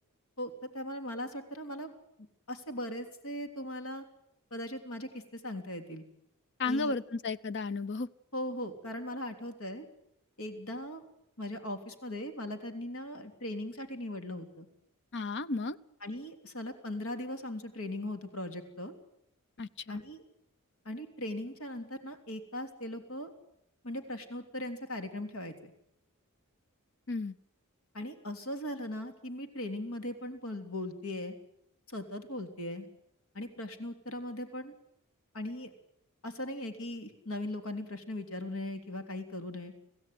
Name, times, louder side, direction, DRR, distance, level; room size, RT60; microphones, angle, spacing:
voice 1, 0.4-1.9 2.2-4.0 4.5-6.0 6.6-7.0 8.3-9.8 10.4-11.0 11.4-14.7 16.0-18.9 19.9-20.2 20.8-23.3 23.8-25.7 27.9-31.3 31.9-32.9 33.3-34.7 35.3-35.7 36.2-39.7, left 1 dB, 75° left, 7 dB, 3.3 m, -39 dB
voice 2, 6.6-8.1 15.1-15.8 19.6-20.0 27.1-27.4, left 3 dB, 50° left, 16 dB, 0.9 m, -33 dB
26.0 x 17.0 x 9.5 m, 0.81 s
head